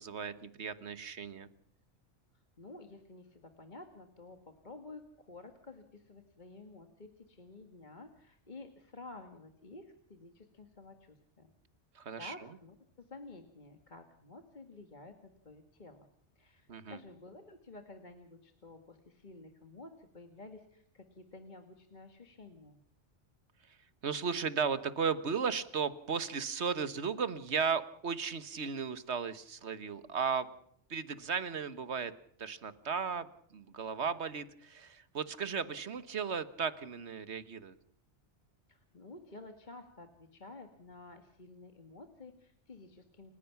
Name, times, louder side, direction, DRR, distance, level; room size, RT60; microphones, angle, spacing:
voice 1, 0.0-1.5 11.9-12.3 16.7-17.0 24.0-30.5 30.9-32.1 32.4-37.7, right 6 dB, 65° right, 14 dB, 1.5 m, -35 dB
voice 2, 2.3-11.5 12.2-16.1 16.4-22.8 38.7-43.3, left 2 dB, 40° left, 6 dB, 1.9 m, -52 dB
29.5 x 16.0 x 5.9 m, 0.68 s
omnidirectional pair, 1.2 m